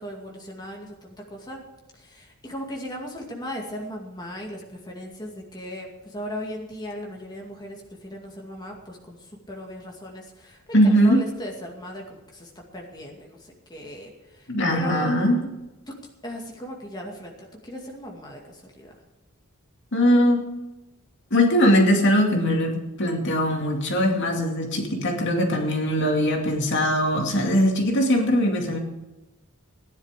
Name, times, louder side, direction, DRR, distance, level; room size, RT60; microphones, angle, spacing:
voice 1, 0.0-1.6 1.9-15.1 15.9-16.0 16.2-18.9, equal, 20° left, 0 dB, 2.3 m, -37 dB
voice 2, 10.7-11.2 14.5-15.4 19.9-20.4 21.3-28.8, equal, 55° left, 2 dB, 2.4 m, -21 dB
16.5 x 10.5 x 5.0 m, 1.1 s
head